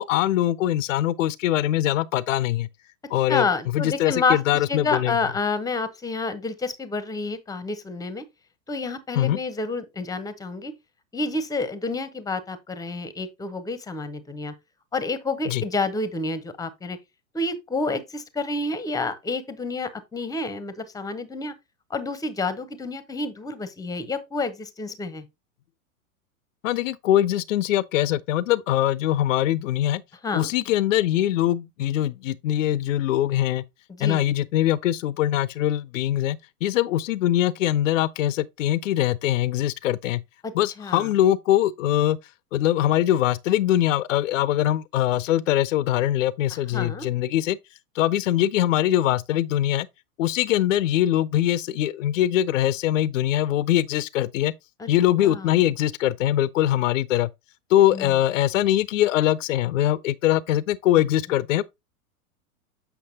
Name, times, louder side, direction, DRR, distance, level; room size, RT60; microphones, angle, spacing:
voice 1, 0.0-2.7 3.1-3.5 3.7-5.1 9.2-9.4 15.5-15.6 26.6-30.0 30.3-33.6 34.0-40.2 40.5-42.2 42.5-47.6 48.0-49.9 50.2-54.5 54.9-57.3 57.7-61.6, left 13 dB, 60° left, 0.5 m, -22 dB
voice 2, 3.3-8.2 8.7-10.7 11.1-14.5 14.9-17.0 17.3-21.5 21.9-25.2 30.2-30.5 33.9-34.2 40.4-41.1 46.5-47.1 54.8-54.9 55.2-55.5 57.9-58.2, left 3 dB, 10° left, 0.7 m, -29 dB
7.9 x 5.8 x 2.7 m
figure-of-eight pair, 95°, 43 cm